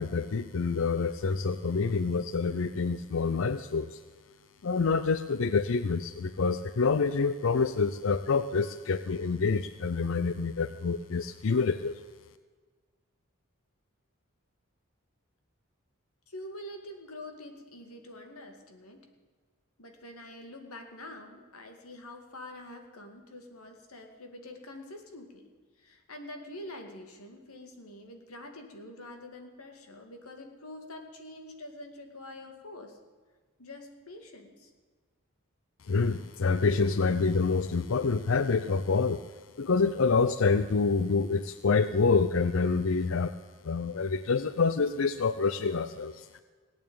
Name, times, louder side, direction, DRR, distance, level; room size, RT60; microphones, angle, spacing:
voice 1, 0.0-4.0 4.6-12.0 35.9-39.3 39.6-43.3 43.6-46.3, left 4 dB, 65° left, 12 dB, 0.5 m, -27 dB
voice 2, 16.3-19.1 19.8-25.5 25.8-33.0 33.6-34.7, left 1 dB, 85° left, 5 dB, 2.2 m, -46 dB
18.0 x 9.0 x 8.7 m, 1.5 s
head